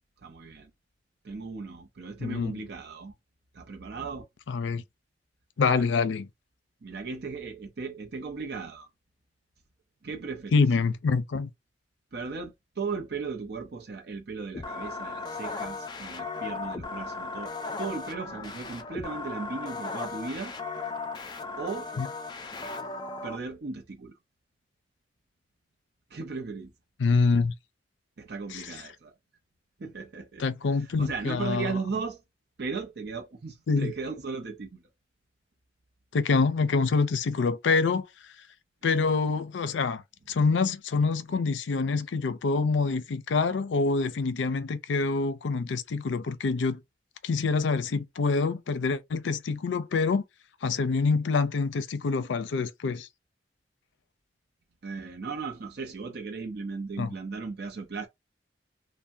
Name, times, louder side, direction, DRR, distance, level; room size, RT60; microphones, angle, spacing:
voice 1, 0.2-0.7 1.2-3.1 3.5-4.3 5.6-5.8 6.8-8.9 10.0-10.6 12.1-20.5 21.6-21.9 23.2-24.1 26.1-26.7 28.2-29.1 29.8-30.4 30.7-32.2 32.6-34.8 54.8-58.1, right 4 dB, 60° right, 0.6 m, -36 dB
voice 2, 2.2-2.6 4.5-4.8 5.6-6.3 10.5-11.5 22.0-22.1 27.0-27.5 28.5-28.6 30.4-31.7 33.7-33.9 36.1-38.1 38.8-40.0 40.3-46.8 47.2-50.2 50.6-53.1 57.0-57.1, left 4 dB, 90° left, 0.5 m, -26 dB
sound 1, 14.5-23.4, left 3 dB, 25° left, 0.4 m, -36 dB
3.3 x 2.1 x 2.6 m
head